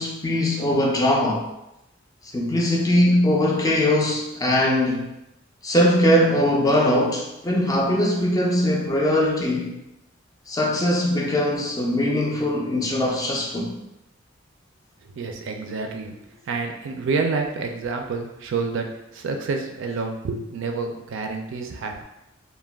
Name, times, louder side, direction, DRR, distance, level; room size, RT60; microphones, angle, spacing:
voice 1, 0.0-1.5 2.3-5.0 5.6-9.7 10.5-13.7, left 1 dB, 20° left, -1 dB, 0.4 m, -21 dB
voice 2, 15.1-18.9 19.1-22.0, right 4 dB, 65° right, 4 dB, 0.3 m, -28 dB
2.3 x 2.1 x 3.3 m, 0.89 s
head